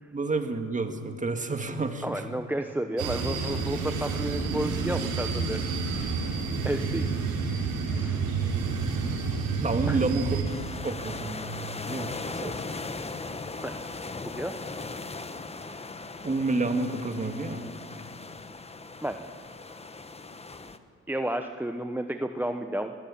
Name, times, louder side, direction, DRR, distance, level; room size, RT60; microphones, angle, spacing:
voice 1, 0.1-2.2 9.6-10.4 10.8-12.6 16.2-17.7, right 3 dB, 25° right, 6 dB, 2.0 m, -30 dB
voice 2, 2.0-5.6 5.9-6.0 6.6-7.3 7.9-8.2 9.9-10.1 13.6-13.7 14.3-14.6 19.0-19.2 21.1-22.9, right 1 dB, 5° right, 6 dB, 0.9 m, -32 dB
sound 1, 3.0-10.4, right 4 dB, 90° right, 3.9 m, -29 dB
sound 2, 10.4-20.8, left 3 dB, 20° left, 1.2 m, -38 dB
21.0 x 16.0 x 8.7 m, 2.3 s
cardioid pair, 90°, 30 cm